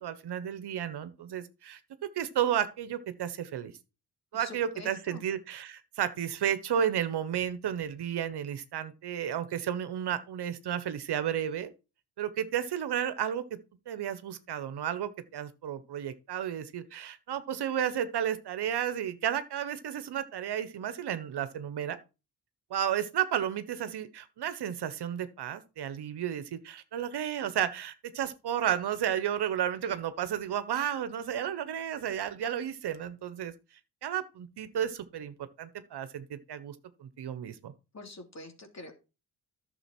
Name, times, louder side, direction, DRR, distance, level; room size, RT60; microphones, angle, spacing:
voice 1, 0.0-3.7 4.3-11.7 12.2-13.6 13.9-22.0 22.7-33.5 34.0-36.7 37.0-37.7, right 9 dB, 70° right, 1.2 m, -32 dB
voice 2, 4.3-5.2 37.9-38.9, left 2 dB, 40° left, 3.1 m, -46 dB
11.0 x 6.9 x 4.5 m
supercardioid pair, 55°, 41 cm